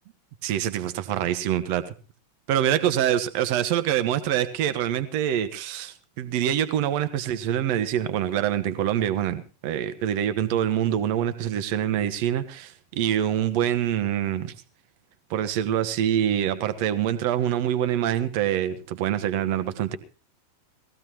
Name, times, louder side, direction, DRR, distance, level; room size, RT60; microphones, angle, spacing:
voice 1, 0.4-1.8 2.5-14.5 15.3-20.0, right 10 dB, 45° right, 1.3 m, -25 dB
19.5 x 15.0 x 3.1 m
figure-of-eight pair, 90°, 0 cm